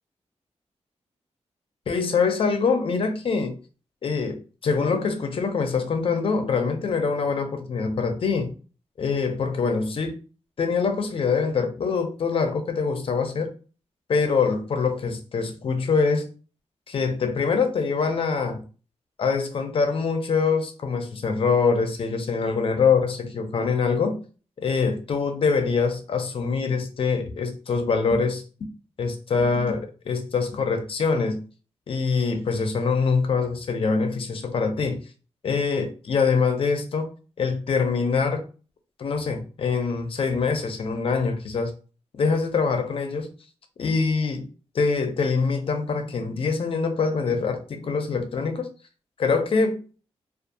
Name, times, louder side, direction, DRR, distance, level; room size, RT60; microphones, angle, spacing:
voice 1, 1.9-3.6 4.0-8.5 9.0-10.2 10.6-13.5 14.1-16.3 16.9-18.6 19.2-24.2 24.6-28.4 29.0-31.4 31.9-35.0 35.4-37.1 37.4-38.4 39.0-41.7 42.2-43.3 43.8-44.4 44.7-48.7 49.2-49.8, left 5 dB, 55° left, 0.4 m, -24 dB
2.6 x 2.3 x 2.5 m
wide cardioid pair, 140°, 11 cm